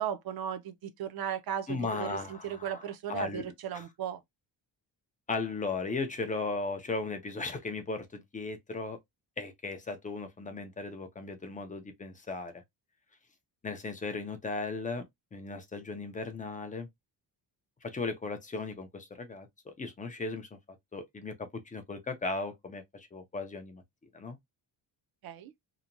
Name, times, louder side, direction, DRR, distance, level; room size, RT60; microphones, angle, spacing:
voice 1, 0.0-4.2 25.2-25.5, right 9 dB, 55° right, 0.5 m, -36 dB
voice 2, 1.7-2.8 3.1-3.8 5.3-9.0 9.4-12.6 13.6-15.0 15.3-16.9 17.8-20.5 20.9-21.3 21.7-23.8 24.1-24.4, left 3 dB, 20° left, 0.3 m, -36 dB
2.9 x 2.1 x 2.5 m
wide cardioid pair, 170°, 45 cm